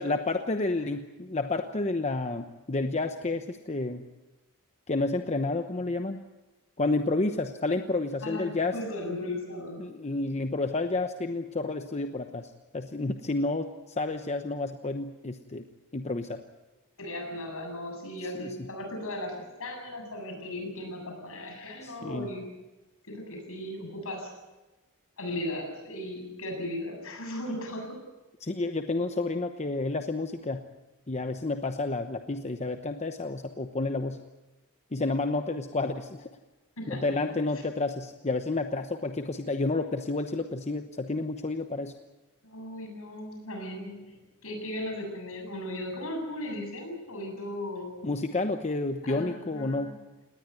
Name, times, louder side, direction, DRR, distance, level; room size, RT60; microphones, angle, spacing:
voice 1, 0.0-4.0 4.9-6.2 6.8-8.7 9.8-15.6 15.9-16.4 18.4-18.5 21.8-22.3 28.4-30.6 31.1-34.2 34.9-36.3 36.9-41.9 48.0-50.0, left 2 dB, 30° left, 6 dB, 0.9 m, -30 dB
voice 2, 8.2-9.8 17.0-22.5 23.1-24.3 25.2-28.0 36.8-37.3 42.4-44.2 44.4-48.1 49.0-50.0, left 1 dB, 65° left, 3 dB, 7.6 m, -37 dB
19.5 x 19.0 x 9.4 m, 1.1 s
head